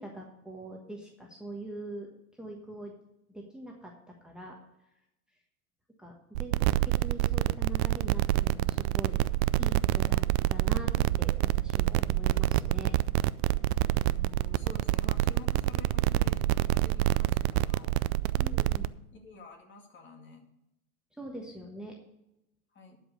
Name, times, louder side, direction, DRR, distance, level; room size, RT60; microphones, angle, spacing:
voice 1, 0.0-2.1 2.4-2.9 3.3-4.6 6.0-9.2 9.6-10.9 11.2-12.9 18.4-18.9 21.2-22.0, right 1 dB, ahead, 0 dB, 1.3 m, -43 dB
sound 1, 6.4-18.9, right 16 dB, 50° right, 0.4 m, -27 dB
voice 2, 14.1-18.0 19.1-20.5 22.7-23.0, left 3 dB, 25° left, 4 dB, 2.1 m, -49 dB
11.5 x 5.3 x 6.6 m, 0.89 s
hypercardioid pair, 110°, 43 cm